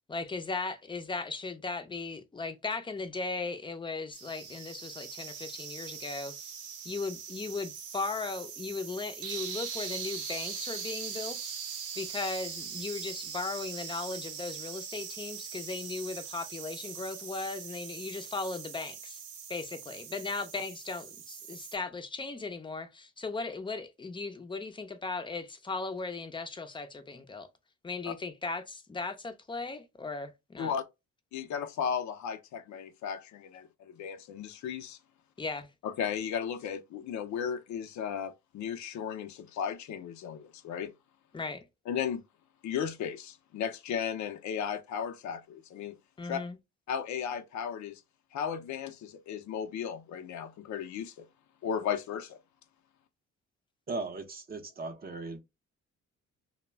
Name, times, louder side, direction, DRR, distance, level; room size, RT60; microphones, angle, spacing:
voice 1, 0.1-6.5 6.8-11.5 12.0-19.2 19.5-27.5 27.8-30.7 35.4-35.7 41.3-41.6 46.2-46.6, left 3 dB, 15° left, 0.5 m, -37 dB
sound 1, 4.1-21.8, right 7 dB, 90° right, 0.7 m, -41 dB
voice 2, 31.3-35.0 35.8-40.9 41.9-42.2 42.6-46.0 46.2-46.4 46.9-48.0 48.3-51.2 51.6-52.4, left 8 dB, 70° left, 0.5 m, -35 dB
voice 3, 53.9-55.4, right 3 dB, 30° right, 0.6 m, -37 dB
2.2 x 2.0 x 3.3 m
cardioid pair, 90°, 30 cm